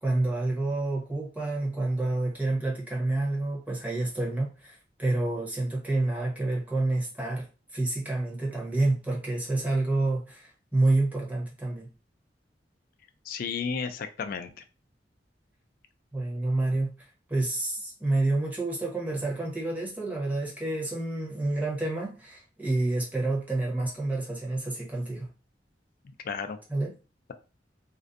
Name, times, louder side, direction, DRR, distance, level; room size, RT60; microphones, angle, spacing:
voice 1, 0.0-11.9 16.1-16.9 17.3-25.3 26.7-26.9, right 2 dB, 10° right, -3 dB, 0.9 m, -28 dB
voice 2, 13.3-14.6 26.2-26.6, left 6 dB, 55° left, 9 dB, 0.3 m, -33 dB
2.5 x 2.1 x 2.4 m, 0.32 s
head